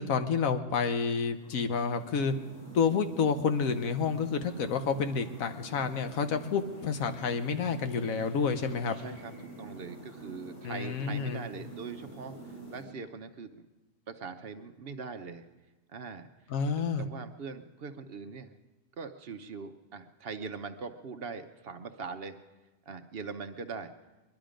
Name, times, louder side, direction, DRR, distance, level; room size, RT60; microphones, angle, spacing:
voice 1, 0.0-2.3 2.7-8.9 10.6-11.4 16.5-17.0, left 5 dB, 85° left, 8 dB, 1.3 m, -29 dB
sound 1, 1.0-12.8, right 2 dB, 30° left, 4.4 m, -47 dB
voice 2, 9.0-12.3 12.7-13.5 14.1-15.5 15.9-16.3 17.0-18.5 19.0-22.4 22.9-23.9, right 5 dB, 55° right, 8 dB, 0.9 m, -41 dB
21.5 x 12.0 x 5.1 m, 1.1 s
omnidirectional pair, 1.4 m